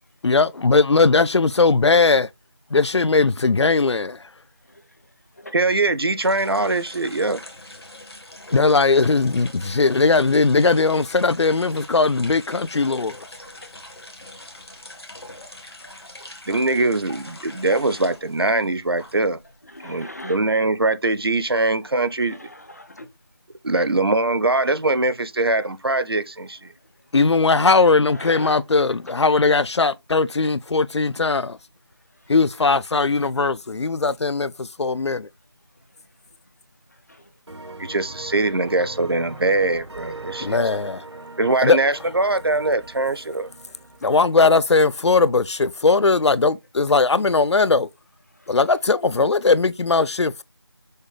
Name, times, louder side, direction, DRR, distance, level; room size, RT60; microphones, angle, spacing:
voice 1, 0.2-2.3 2.7-4.2 8.5-13.1 27.1-31.6 32.3-35.3 40.4-41.0 41.6-41.8 44.0-47.9 48.5-50.4, left 4 dB, 80° left, 0.4 m, -19 dB
voice 2, 4.6-5.1 5.3-5.6 8.5-8.9 11.7-11.8 12.7-13.1 13.6-13.7 16.1-16.3 19.0-19.1 19.6-20.5 21.5-21.7 22.3-23.1 23.7-23.9 28.1-28.7 29.1-29.2 30.4-30.5 32.1-32.4 35.9-36.1 36.9-37.3 39.3-39.4 40.4-40.6 41.1-41.3 44.0-44.2 48.3-48.8 50.0-50.2, left 1 dB, 35° left, 0.6 m, -43 dB
voice 3, 5.5-7.4 16.5-19.4 19.8-22.4 23.6-26.7 37.8-40.6 41.4-43.5, right 2 dB, 60° right, 0.6 m, -22 dB
sound 1, 6.2-19.4 19.7-20.9, left 1 dB, 65° left, 1.4 m, -42 dB
sound 2, 37.5-45.1, right 3 dB, 90° right, 0.9 m, -40 dB
6.4 x 2.2 x 3.1 m
figure-of-eight pair, 175°, 14 cm